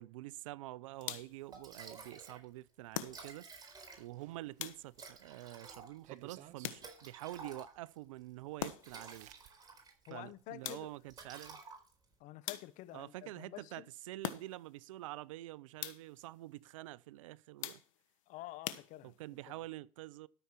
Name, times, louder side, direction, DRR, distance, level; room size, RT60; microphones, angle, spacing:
voice 1, 0.0-3.5 4.0-9.3 10.1-11.6 12.9-17.8 19.0-20.3, right 17 dB, 70° right, 0.5 m, -47 dB
sound 1, 1.0-1.5 2.9-3.6 4.6-5.2 6.6-7.2 8.6-9.1 10.6-11.2 12.5-13.0 14.2-14.8 15.8-16.3 17.6-18.1 18.6-19.4, left 13 dB, 70° left, 1.2 m, -44 dB
Liquid, 1.2-1.3 1.5-2.4 2.7-2.8 3.0-4.3 4.9-8.0 8.6-10.2 10.5-10.7 11.1-12.1, right 4 dB, 25° right, 4.3 m, -52 dB
sound 2, 3.9-5.3 6.0-6.7 8.2-8.3 8.8-9.5, right 12 dB, 45° right, 1.3 m, -57 dB
voice 2, 10.1-10.9 12.2-13.9 18.3-19.2, left 16 dB, 45° left, 0.9 m, -49 dB
13.5 x 6.8 x 4.6 m
hypercardioid pair, 105°, 17 cm